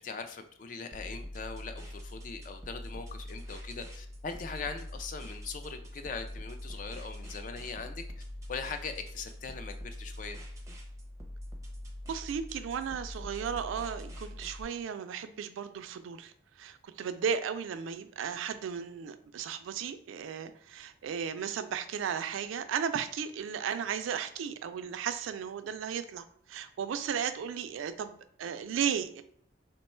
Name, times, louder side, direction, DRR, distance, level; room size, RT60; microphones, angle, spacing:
voice 1, 0.0-8.0 8.5-10.4, left 4 dB, 40° left, 7 dB, 0.3 m, -41 dB
sound 1, 0.9-14.6, left 1 dB, 15° right, 0.5 m, -43 dB
voice 2, 12.1-29.2, right 7 dB, 90° right, 11 dB, 0.3 m, -35 dB
3.0 x 2.2 x 4.2 m, 0.63 s
head